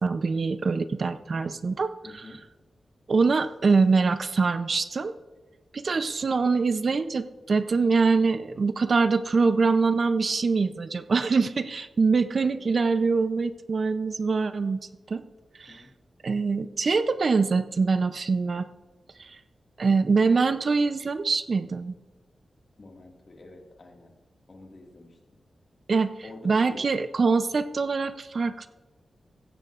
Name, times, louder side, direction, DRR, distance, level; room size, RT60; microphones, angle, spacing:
voice 1, 0.0-2.3 3.1-5.1 5.7-14.8 15.1-15.2 15.6-15.8 16.2-18.7 19.2-19.4 19.8-21.9 25.9-26.1 26.4-28.7, right 4 dB, 50° right, 11 dB, 0.5 m, -24 dB
voice 2, 2.0-2.4 12.5-12.6 15.7-15.9 22.8-24.1 24.5-25.2 26.2-26.8, left 2 dB, 40° left, 2 dB, 1.9 m, -47 dB
15.5 x 14.5 x 2.5 m, 1.2 s
wide cardioid pair, 130°, 0 cm